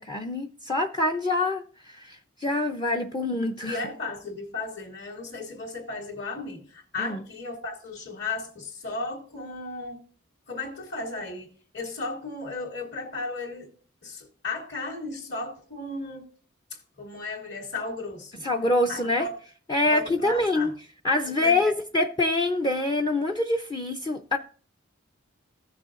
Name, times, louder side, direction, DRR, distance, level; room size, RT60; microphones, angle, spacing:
voice 1, 0.0-3.8 7.0-7.2 18.4-19.3 19.7-20.7 21.0-24.4, left 2 dB, 20° left, 0.5 m, -25 dB
voice 2, 3.7-10.0 10.5-13.7 14.0-16.2 16.7-18.4 18.9-19.3 19.9-20.7 21.4-21.7, left 3 dB, 60° left, 2.6 m, -35 dB
16.0 x 6.7 x 2.5 m
head